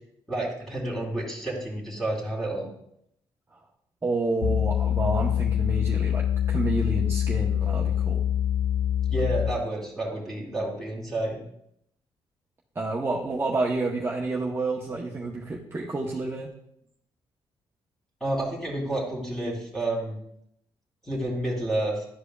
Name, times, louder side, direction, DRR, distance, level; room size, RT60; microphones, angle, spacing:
voice 1, 0.3-2.7 9.1-11.4 18.2-20.1 21.0-22.1, right 1 dB, 5° left, -3 dB, 2.2 m, -30 dB
voice 2, 4.0-8.2 12.7-16.5, right 2 dB, 25° right, -2 dB, 0.9 m, -29 dB
sound 1, 4.4-9.7, left 10 dB, 85° left, 0.4 m, -25 dB
11.0 x 4.9 x 2.3 m, 0.74 s
cardioid pair, 80°, 10 cm